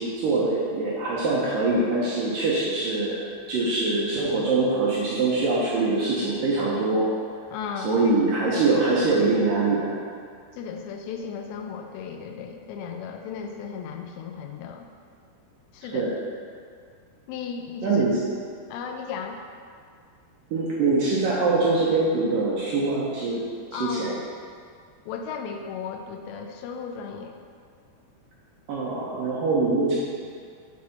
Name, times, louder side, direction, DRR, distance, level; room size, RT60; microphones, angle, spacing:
voice 1, 0.0-3.2 3.5-7.1 7.8-10.0 15.9-16.1 17.8-18.2 20.5-23.5 23.7-24.2 28.7-29.9, right 3 dB, 75° right, -7 dB, 2.1 m, -23 dB
voice 2, 7.5-8.1 10.5-14.9 15.7-16.1 17.3-18.0 18.7-19.4 23.7-24.1 25.1-27.4, left 6 dB, 85° left, 4 dB, 2.8 m, -35 dB
7.6 x 6.0 x 4.2 m, 2.1 s
omnidirectional pair, 5.0 m